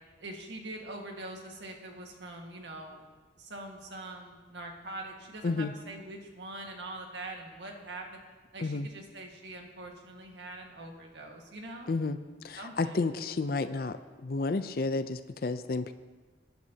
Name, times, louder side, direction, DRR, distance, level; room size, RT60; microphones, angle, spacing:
voice 1, 0.2-3.0 3.4-8.1 8.5-12.0 12.6-13.0, right 2 dB, 80° right, 1 dB, 1.7 m, -43 dB
voice 2, 12.4-15.9, left 3 dB, 55° left, 11 dB, 0.5 m, -31 dB
19.5 x 10.5 x 2.8 m, 1.4 s
head